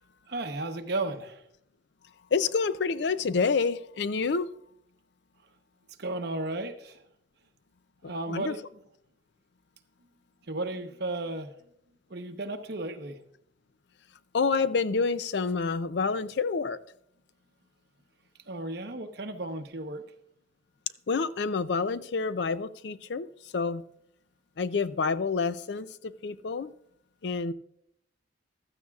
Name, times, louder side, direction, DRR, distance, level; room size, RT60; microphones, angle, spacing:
voice 1, 0.3-1.4 6.0-7.0 8.1-8.6 10.5-11.6 12.1-13.2 18.5-20.0, right 2 dB, 60° right, 6 dB, 1.0 m, -34 dB
voice 2, 2.3-4.5 8.0-8.5 14.3-16.8 21.1-23.8 24.6-26.7 27.2-27.5, left 4 dB, 65° left, 15 dB, 0.5 m, -28 dB
15.5 x 13.0 x 2.4 m, 0.71 s
head